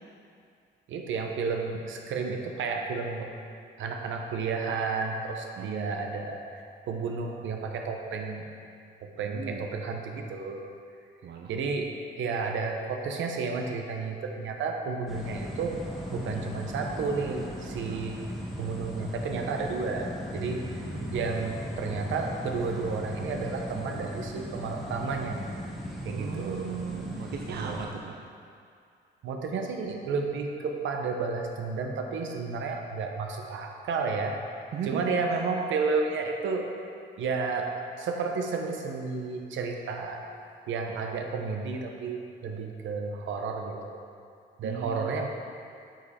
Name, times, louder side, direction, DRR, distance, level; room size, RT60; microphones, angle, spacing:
voice 1, 0.9-3.3 3.8-8.5 9.0-10.6 11.5-15.8 16.1-18.2 18.6-20.8 21.1-25.4 26.0-26.7 27.5-27.8 29.2-34.4 34.9-36.7 37.2-40.2 40.7-44.0 44.6-45.3, right 4 dB, 75° right, 3 dB, 0.9 m, -32 dB
voice 2, 5.6-6.0 9.2-9.7 11.2-11.5 16.3-16.4 17.9-18.0 20.8-21.1 26.1-28.2 34.7-35.0 35.3-35.4 44.6-45.3, right 7 dB, 55° right, 2 dB, 0.6 m, -38 dB
sound 1, 15.1-27.9, equal, ahead, 1.5 m, -38 dB
9.2 x 5.3 x 4.3 m, 2.4 s
cardioid pair, 90°, 20 cm